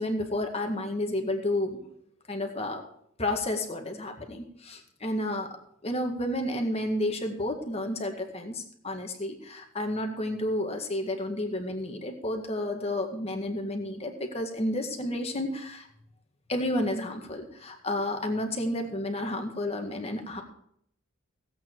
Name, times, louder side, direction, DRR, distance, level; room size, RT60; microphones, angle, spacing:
voice 1, 0.0-1.8 2.3-2.8 3.2-5.5 5.8-15.9 16.5-20.4, left 1 dB, 30° left, 4 dB, 1.9 m, -31 dB
16.5 x 8.6 x 4.7 m, 0.70 s
head